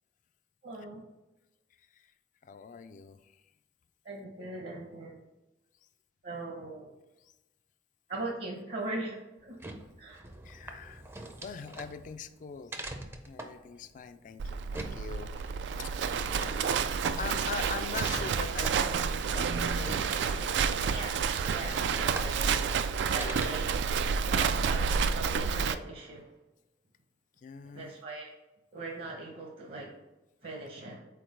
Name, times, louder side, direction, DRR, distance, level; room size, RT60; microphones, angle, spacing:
voice 1, 0.6-1.0 4.0-5.2 6.2-6.9 8.1-9.6 10.0-10.2 20.7-22.7 23.0-23.7 24.0-26.3 27.7-28.3 28.7-29.9 30.4-31.0, right 2 dB, 60° right, 0 dB, 0.9 m, -40 dB
voice 2, 1.8-2.1 2.4-3.4 7.2-7.3 10.4-11.1 11.4-12.8 13.2-15.3 15.7-16.0 16.6-16.8 17.1-20.0 20.4-20.5 23.1-23.6 27.4-27.9, left 5 dB, 45° left, 11 dB, 0.3 m, -43 dB
sound 1, 9.4-23.9, right 1 dB, 15° right, 0.4 m, -45 dB
Livestock farm animals working animals, 14.4-25.7, right 6 dB, 90° right, 0.3 m, -29 dB
sound 2, 16.9-22.4, left 4 dB, 80° left, 0.7 m, -53 dB
4.6 x 4.1 x 5.1 m, 1.0 s
head